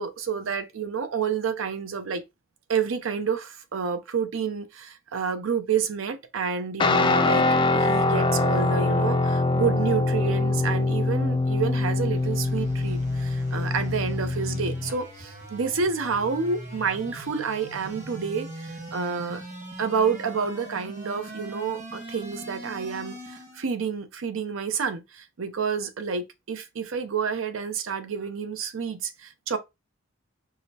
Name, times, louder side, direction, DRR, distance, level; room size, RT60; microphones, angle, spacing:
voice 1, 0.0-2.2 2.7-7.4 7.7-19.4 19.8-29.6, right 6 dB, 85° right, 0.6 m, -29 dB
Guitar, 6.8-14.9, left 2 dB, 25° left, 0.3 m, -23 dB
sound 1, 11.5-23.7, right 1 dB, 40° right, 1.3 m, -41 dB
4.8 x 2.1 x 2.7 m
head